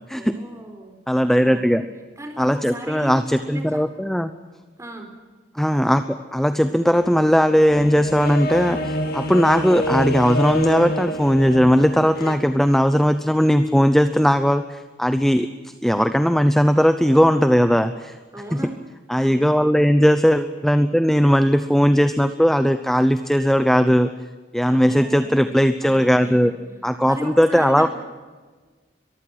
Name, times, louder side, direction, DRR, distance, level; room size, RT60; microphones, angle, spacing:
voice 1, 0.1-1.0 1.4-1.8 2.2-3.1 3.5-3.8 4.8-5.1 18.3-18.8 19.2-19.4 24.7-26.6 27.1-27.9, right 1 dB, 15° right, 4 dB, 4.1 m, -36 dB
voice 2, 1.1-1.8 2.4-4.3 5.6-15.5 15.8-18.1 18.5-18.6 19.1-24.1 24.5-26.5 26.8-27.9, equal, ahead, 10 dB, 0.7 m, -18 dB
sound 1, 6.9-12.3, left 1 dB, 60° left, 2.5 m, -27 dB
22.5 x 15.0 x 8.9 m, 1.4 s
head